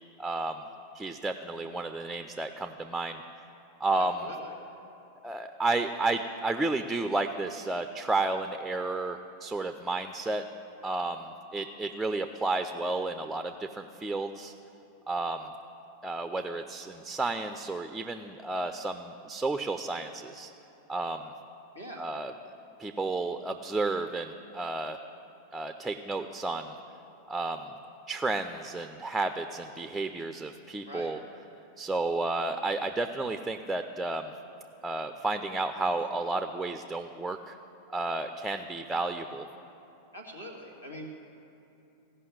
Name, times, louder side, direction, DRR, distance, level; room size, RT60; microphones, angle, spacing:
voice 1, 0.2-0.6 0.9-3.2 3.8-4.3 5.2-10.4 10.8-14.5 15.1-15.5 16.0-20.5 20.9-21.3 22.0-22.3 22.8-25.0 25.5-26.8 27.3-27.7 28.1-31.2 31.8-34.3 34.8-37.6 37.9-39.5, right 2 dB, 5° right, 8 dB, 0.4 m, -32 dB
voice 2, 4.0-4.5 21.7-22.1 30.8-31.1 40.1-41.1, equal, 85° left, -1 dB, 1.8 m, -43 dB
15.5 x 5.5 x 7.7 m, 2.8 s
figure-of-eight pair, 90°, 0 cm